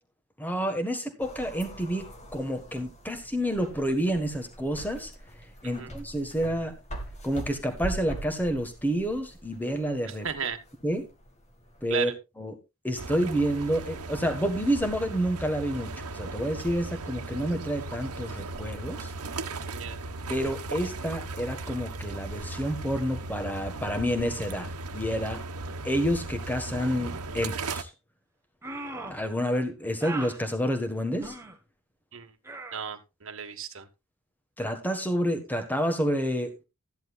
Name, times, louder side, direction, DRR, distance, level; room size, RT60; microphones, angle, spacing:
voice 1, 0.4-5.1 5.6-6.7 7.2-10.3 10.8-11.1 11.8-12.1 12.4-12.6 12.8-19.1 20.3-25.4 25.8-27.9 29.1-31.3 34.6-36.5, equal, 10° left, 1.6 m, -29 dB
sound 1, 1.2-11.9, right 1 dB, 30° left, 1.8 m, -43 dB
voice 2, 10.0-10.6 11.9-12.2 19.7-20.0 32.1-32.3 32.7-33.9, right 7 dB, 60° right, 1.4 m, -34 dB
sound 2, 13.0-27.8, right 3 dB, 85° right, 1.1 m, -37 dB
sound 3, 28.6-29.2 30.0-30.4 31.2-31.5 32.4-32.8, right 2 dB, 10° right, 1.5 m, -38 dB
14.0 x 10.5 x 2.5 m
head